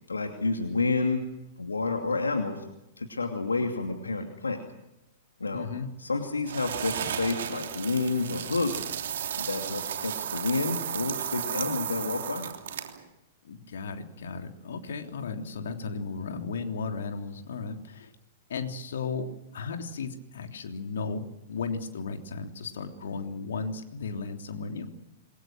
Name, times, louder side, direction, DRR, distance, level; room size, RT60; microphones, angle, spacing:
voice 1, 0.1-1.2 1.6-2.6 3.0-4.6 5.4-5.7 6.0-8.8 9.4-12.5, left 3 dB, 75° left, 4 dB, 2.7 m, -29 dB
voice 2, 5.5-5.9 13.4-18.1 18.5-24.9, left 4 dB, 60° left, 5 dB, 3.2 m, -35 dB
sound 1, 6.5-13.0, right 9 dB, 60° right, 3.2 m, -34 dB
27.5 x 22.5 x 6.2 m, 0.90 s
figure-of-eight pair, 100°, 0 cm